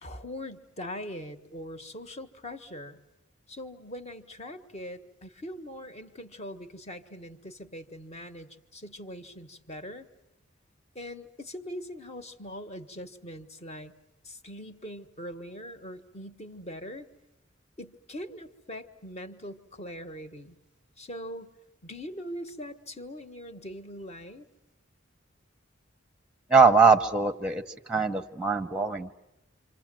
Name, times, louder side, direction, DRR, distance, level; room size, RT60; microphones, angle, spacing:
voice 1, 0.0-3.0 3.5-10.1 10.9-13.9 14.2-17.1 17.8-20.6 21.0-21.5 21.8-24.5, equal, 30° left, 8 dB, 1.3 m, -41 dB
voice 2, 26.5-27.6 27.9-29.1, right 4 dB, 5° right, 9 dB, 0.9 m, -21 dB
28.0 x 26.0 x 7.6 m, 0.91 s
head